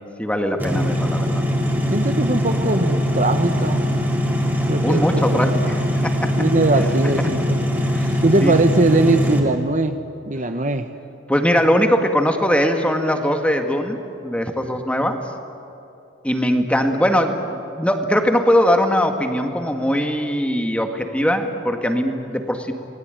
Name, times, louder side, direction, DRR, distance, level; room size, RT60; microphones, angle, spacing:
voice 1, 0.2-1.4 4.8-6.4 7.2-7.3 7.8-8.6 11.3-15.2 16.2-22.7, equal, 5° left, 5 dB, 1.9 m, -21 dB
sound 1, 0.6-9.4, equal, 10° right, 3.4 m, -21 dB
voice 2, 1.9-3.8 4.7-5.6 6.4-7.6 8.2-10.0 10.3-10.9, right 2 dB, 40° right, 8 dB, 1.1 m, -20 dB
28.5 x 20.5 x 9.2 m, 2.8 s
head